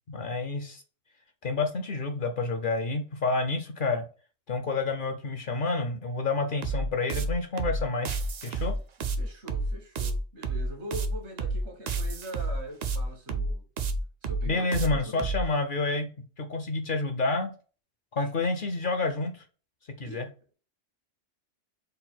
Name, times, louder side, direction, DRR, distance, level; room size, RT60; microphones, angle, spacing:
voice 1, 0.1-0.8 1.4-4.0 4.5-8.7 14.5-16.1 16.4-17.5 18.1-19.4 20.0-20.3, left 3 dB, 55° left, 0.7 m, -29 dB
sound 1, 6.6-15.4, right 3 dB, 55° right, 0.5 m, -29 dB
voice 2, 9.2-13.7 14.2-15.3 20.0-20.3, right 1 dB, 70° right, 1.4 m, -42 dB
4.0 x 2.2 x 4.2 m
omnidirectional pair, 1.2 m